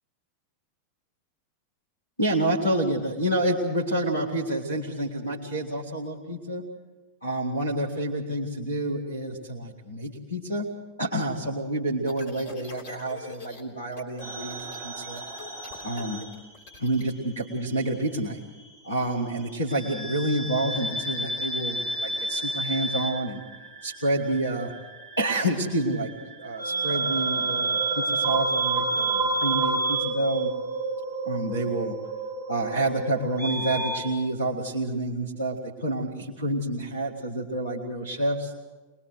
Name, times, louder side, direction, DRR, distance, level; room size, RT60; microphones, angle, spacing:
voice 1, 2.2-6.7 7.2-10.7 11.0-15.2 15.8-16.2 16.8-18.4 18.8-23.4 23.8-24.7 25.2-26.1 26.4-30.5 31.2-32.0 32.5-38.5, right 1 dB, 85° left, -1 dB, 2.1 m, -28 dB
sound 1, 12.0-13.6 13.9-14.2 14.5-17.1, left 3 dB, 55° left, 3.5 m, -44 dB
sound 2, 14.2-17.0 17.3-18.5 19.7-34.0, right 3 dB, 40° right, 4.5 m, -30 dB
23.0 x 21.0 x 6.3 m, 1.3 s
figure-of-eight pair, 90°, 0 cm